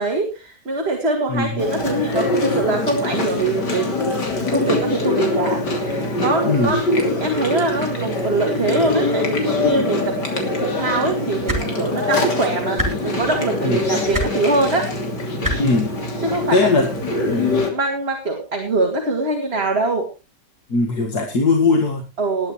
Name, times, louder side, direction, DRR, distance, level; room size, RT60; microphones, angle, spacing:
voice 1, 0.0-4.2 4.5-14.9 16.2-16.9 17.7-20.1 22.2-22.5, right 2 dB, 35° right, 2 dB, 2.5 m, -23 dB
Chewing mastication, 1.6-17.7, left 2 dB, 85° left, 3.6 m, -23 dB
sound 1, 11.4-11.6 12.7-12.9 14.1-14.3 15.4-15.5 16.8-16.9, equal, 10° right, 3.6 m, -22 dB
voice 2, 15.6-15.9 16.5-16.9 17.2-17.6 20.7-22.0, left 3 dB, 65° left, 1 dB, 2.4 m, -19 dB
20.0 x 10.5 x 3.2 m, 0.30 s
omnidirectional pair, 1.8 m